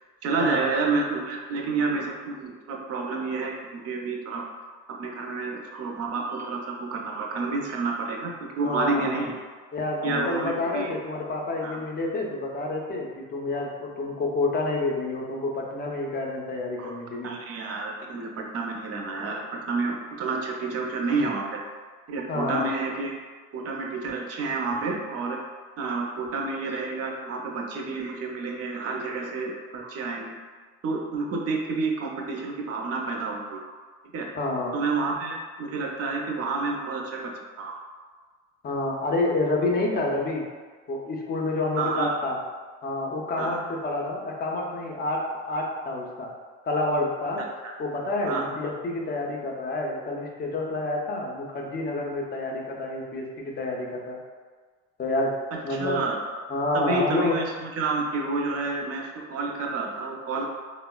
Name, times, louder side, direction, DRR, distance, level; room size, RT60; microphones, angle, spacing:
voice 1, 0.2-4.5 5.0-9.3 10.0-10.9 11.6-11.8 16.8-16.9 17.2-21.6 22.1-23.1 23.5-25.4 25.8-30.3 30.8-33.6 34.1-34.3 34.7-37.8 41.8-42.1 43.4-43.6 47.6-47.7 48.3-48.5 55.5-56.2 56.7-60.4, right 3 dB, 40° right, 1 dB, 0.5 m, -29 dB
voice 2, 8.6-9.3 9.7-17.3 22.3-22.7 34.3-34.7 38.6-40.4 40.9-42.4 42.8-46.3 46.6-47.4 47.8-53.3 53.6-54.2 55.0-55.3 55.6-56.0 56.5-57.4, left 2 dB, 25° left, 0 dB, 0.5 m, -28 dB
3.6 x 2.0 x 2.2 m, 1.5 s
supercardioid pair, 90°, 38 cm